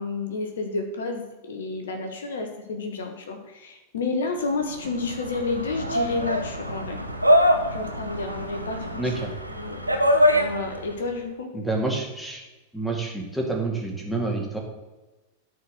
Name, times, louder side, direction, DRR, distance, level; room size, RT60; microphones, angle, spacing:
voice 1, 0.0-7.0 7.7-9.0 9.5-9.9 10.3-11.5, left 3 dB, 65° left, 4 dB, 1.4 m, -30 dB
sound 1, 4.6-11.0, equal, 85° right, 1.0 m, -24 dB
voice 2, 9.0-9.3 11.5-12.4 12.7-14.6, right 2 dB, ahead, 0 dB, 2.4 m, -28 dB
13.0 x 4.8 x 6.7 m, 1.1 s
figure-of-eight pair, 90°, 0 cm